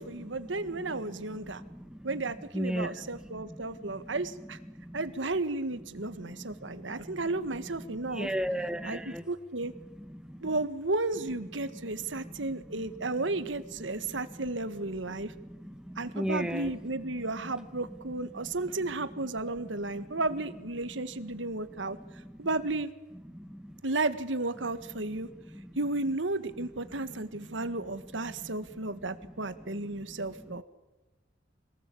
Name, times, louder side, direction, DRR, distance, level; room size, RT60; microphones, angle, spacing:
voice 1, 0.0-1.6 2.0-4.6 4.9-8.3 8.8-9.7 10.4-15.3 16.0-22.0 22.4-22.9 23.8-25.3 25.7-30.6, right 2 dB, 80° right, 1.7 m, -33 dB
voice 2, 2.5-2.9 8.2-9.2 16.1-16.7, equal, 5° right, 1.2 m, -31 dB
26.0 x 19.0 x 8.6 m
head